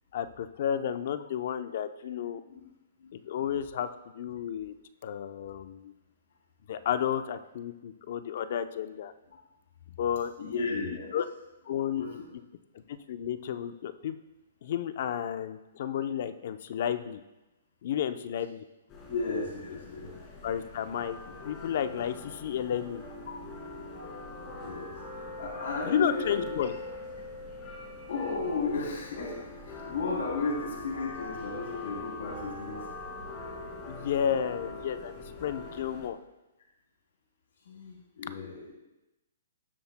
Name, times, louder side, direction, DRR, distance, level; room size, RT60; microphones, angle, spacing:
voice 1, 0.1-2.4 3.1-3.9 4.1-4.7 5.0-5.9 6.7-9.1 10.0-11.3 11.7-12.1 12.7-14.2 14.6-17.2 17.8-18.6 20.4-21.2 21.4-23.0 25.8-26.7 33.9-35.1 35.4-36.2, left 9 dB, 55° left, 11 dB, 0.6 m, -32 dB
voice 2, 10.4-11.2 12.0-12.1 19.1-20.1 21.2-21.4 23.3-23.4 24.6-24.9 25.2-26.6 28.1-29.4 29.7-32.8 37.7-38.7, left 3 dB, 70° left, -2 dB, 3.5 m, -34 dB
sound 1, 18.9-36.1, left 2 dB, 25° left, 2.3 m, -43 dB
18.5 x 7.7 x 2.2 m, 1.0 s
hypercardioid pair, 150°, 0 cm